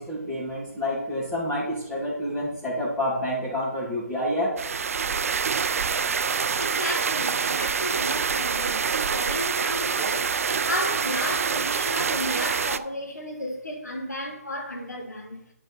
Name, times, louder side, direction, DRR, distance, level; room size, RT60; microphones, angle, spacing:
voice 1, 0.0-4.6, equal, 10° left, 2.0 m, -28 dB
sound 1, 4.6-12.8, right 6 dB, 60° right, 0.4 m, -26 dB
voice 2, 6.6-10.3 10.7-15.4, equal, 90° left, 2.1 m, -33 dB
8.8 x 5.0 x 4.0 m
figure-of-eight pair, 145°, 9 cm